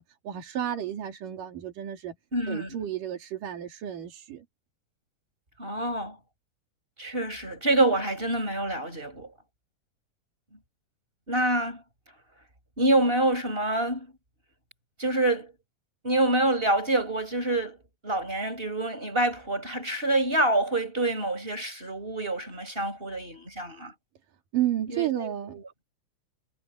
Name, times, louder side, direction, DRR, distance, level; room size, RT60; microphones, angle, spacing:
voice 1, 0.0-2.2 2.5-4.5 24.5-25.8, right 11 dB, 80° right, 4.2 m, -32 dB
voice 2, 2.3-2.8 5.6-6.2 7.0-9.3 11.3-11.8 12.8-14.1 15.0-15.5 16.0-17.8 18.0-23.9 24.9-25.6, right 2 dB, 15° right, 6.6 m, -26 dB
omnidirectional pair, 3.8 m